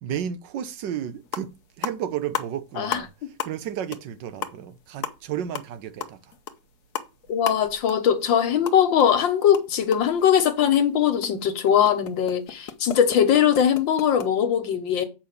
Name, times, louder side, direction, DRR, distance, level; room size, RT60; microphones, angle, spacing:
voice 1, 0.0-6.3, right 9 dB, 75° right, 1.4 m, -33 dB
sound 1, 0.9-1.0 1.2-1.5 1.8-3.1 3.4-3.7 3.9-4.1 4.4-9.1 9.4-14.3, left 9 dB, 60° left, 1.3 m, -35 dB
voice 2, 7.3-15.1, left 9 dB, 85° left, 1.9 m, -21 dB
7.6 x 5.8 x 6.6 m
omnidirectional pair, 2.0 m